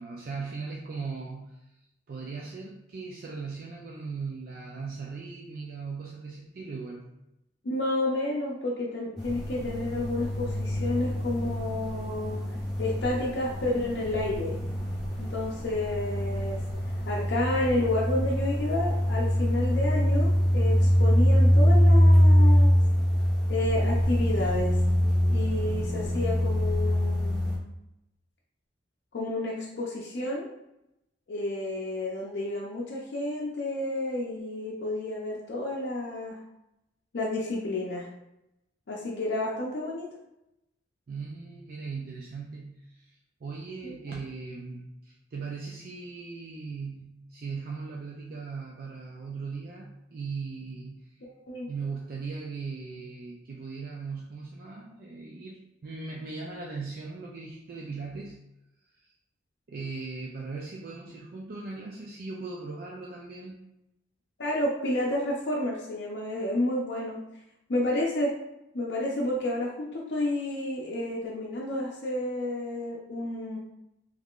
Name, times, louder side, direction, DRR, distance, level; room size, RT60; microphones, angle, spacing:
voice 1, 0.0-1.6 2.1-7.0 41.1-51.2 51.7-58.4 59.7-63.6, right 4 dB, 55° right, -2 dB, 0.4 m, -38 dB
voice 2, 7.6-12.4 12.8-14.6 15.2-16.6 17.1-22.8 23.5-24.8 25.3-27.6 29.1-30.5 31.3-36.4 37.1-38.1 38.9-40.1 43.8-44.0 51.4-51.7 64.4-67.2 67.7-68.3 68.7-73.6, left 1 dB, 70° left, -4 dB, 0.5 m, -30 dB
sound 1, 9.2-27.6, equal, ahead, 1.4 m, -24 dB
3.6 x 3.1 x 2.4 m, 0.87 s
head